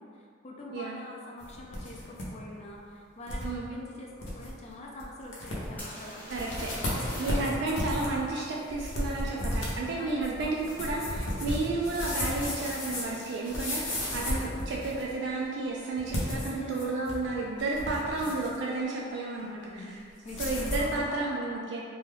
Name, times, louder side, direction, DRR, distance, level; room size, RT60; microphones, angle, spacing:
voice 1, 0.0-6.3 6.8-7.7 9.6-10.3 16.5-16.8 19.4-21.4, left 1 dB, 35° left, -2 dB, 0.4 m, -45 dB
sound 1, 1.4-2.3 2.6-2.7 3.3-3.5 3.9-4.0 4.2-4.5 5.0-5.1 5.3-5.8 6.3-15.1 16.0-17.3 17.6-18.6 20.3-20.9, left 1 dB, 90° left, 0.7 m, -34 dB
sound 2, 5.8-7.5 7.8-7.9 11.3-11.4 12.0-12.2 12.4-13.0 15.1-15.2 15.4-15.5, equal, 10° left, 0.7 m, -44 dB
voice 2, 6.3-6.7 7.2-19.8 20.4-21.8, right 2 dB, 60° right, -3 dB, 0.3 m, -32 dB
2.6 x 2.2 x 3.2 m, 2.2 s
head